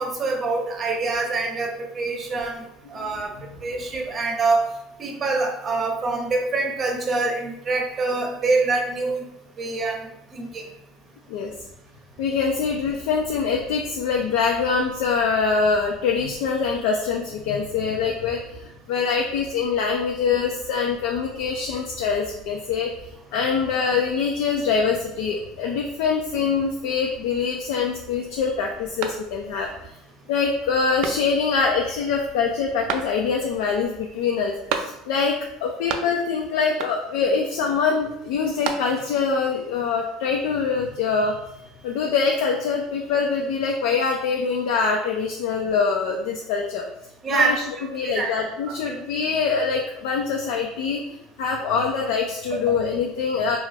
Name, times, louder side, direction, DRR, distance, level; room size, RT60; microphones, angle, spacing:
voice 1, 0.0-2.6 2.9-3.3 3.6-4.6 5.0-9.3 9.6-10.6 47.2-48.3 48.7-48.8 52.5-52.7, right 3 dB, 35° right, 2 dB, 0.7 m, -25 dB
voice 2, 12.2-22.9 23.3-30.0 30.3-41.4 41.8-46.8 47.3-47.6 47.9-53.6, left 5 dB, 75° left, 1 dB, 0.3 m, -24 dB
sound 1, 29.0-29.7 30.1-30.2 31.0-31.6 32.9-33.5 34.7-35.3 35.6-36.4 36.8-37.3 38.3-39.2, right 7 dB, 65° right, 0.3 m, -32 dB
2.3 x 2.3 x 3.2 m, 0.80 s
hypercardioid pair, 80°, 0 cm